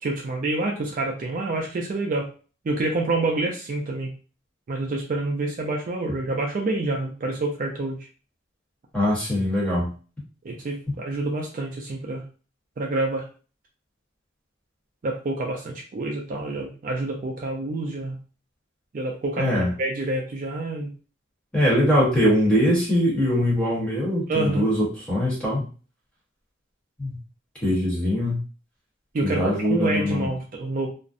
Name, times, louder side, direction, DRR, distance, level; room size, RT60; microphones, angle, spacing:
voice 1, 0.0-2.3 2.6-4.1 4.7-8.0 10.4-12.2 12.8-13.2 15.0-18.2 18.9-19.5 19.8-20.9 24.3-24.7 29.1-30.9, right 2 dB, 40° right, 0 dB, 0.4 m, -27 dB
voice 2, 8.9-9.9 19.4-19.7 21.5-25.6 27.0-27.1 27.6-28.4 29.2-30.3, equal, 5° left, -6 dB, 1.0 m, -22 dB
2.4 x 2.0 x 2.5 m, 0.37 s
head